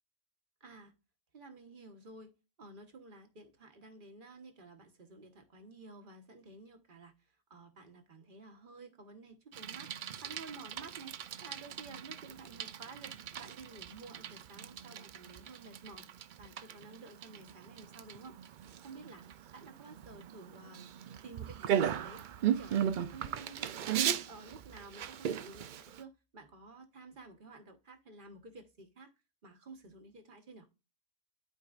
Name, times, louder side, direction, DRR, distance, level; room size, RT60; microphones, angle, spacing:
voice 1, 0.6-0.9 1.3-2.3 2.6-9.9 10.2-11.2 11.4-19.2 19.5-20.9 21.2-29.1 29.4-30.7, right 3 dB, 45° right, 1.3 m, -52 dB
Bicycle, 9.5-26.0, right 9 dB, 60° right, 0.5 m, -37 dB
12.0 x 4.6 x 2.4 m
omnidirectional pair, 1.2 m